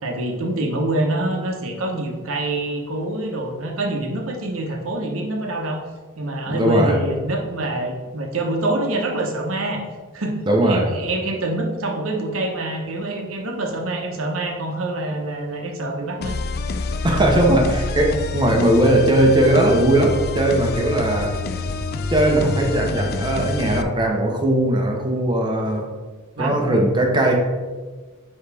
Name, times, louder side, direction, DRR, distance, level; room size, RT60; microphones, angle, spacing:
voice 1, 0.0-5.8 6.2-9.8 10.1-10.4 10.6-16.4 26.4-26.6, right 2 dB, 70° right, 1 dB, 1.0 m, -25 dB
voice 2, 6.5-7.0 10.5-10.9 17.0-21.3 22.1-25.9 26.4-27.3, right 1 dB, 20° right, 1 dB, 0.8 m, -18 dB
Lost Hope Loop, 16.2-23.8, left 4 dB, 50° left, 0.4 m, -27 dB
9.3 x 3.1 x 3.4 m, 1.4 s
head